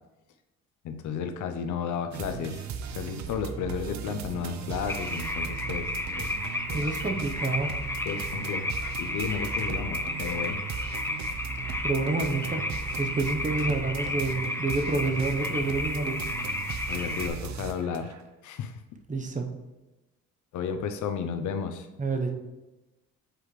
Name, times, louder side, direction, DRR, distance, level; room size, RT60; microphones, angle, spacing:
voice 1, 0.8-2.7 2.9-5.9 6.2-6.3 6.7-6.8 8.1-8.7 9.0-10.6 16.9-18.1 18.4-18.7 20.5-21.9, left 6 dB, 75° left, 8 dB, 0.6 m, -33 dB
sound 1, 2.1-18.2, right 7 dB, 65° right, 0.6 m, -37 dB
sound 2, 4.9-17.3, left 2 dB, 10° left, 0.7 m, -33 dB
voice 2, 6.7-7.7 11.8-12.6 13.0-16.2 19.1-19.5 22.0-22.3, right 3 dB, 25° right, 4 dB, 0.9 m, -28 dB
7.6 x 4.9 x 3.2 m, 1.0 s
cardioid pair, 90°, 30 cm